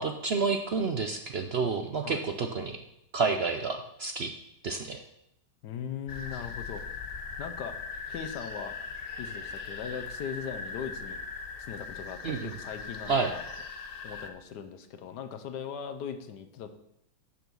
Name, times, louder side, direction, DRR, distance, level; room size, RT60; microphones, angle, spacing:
voice 1, 0.0-2.8 3.1-4.3 4.6-5.0 12.2-12.6 13.1-13.3, right 4 dB, 65° right, 5 dB, 0.6 m, -29 dB
voice 2, 5.6-6.8 7.4-7.7 8.1-8.8 9.2-11.2 11.7-13.4 14.0-16.7, left 7 dB, 75° left, 9 dB, 1.4 m, -39 dB
sound 1, 6.1-14.3, left 4 dB, 50° left, 0.7 m, -40 dB
8.2 x 6.9 x 6.1 m, 0.81 s
omnidirectional pair, 1.9 m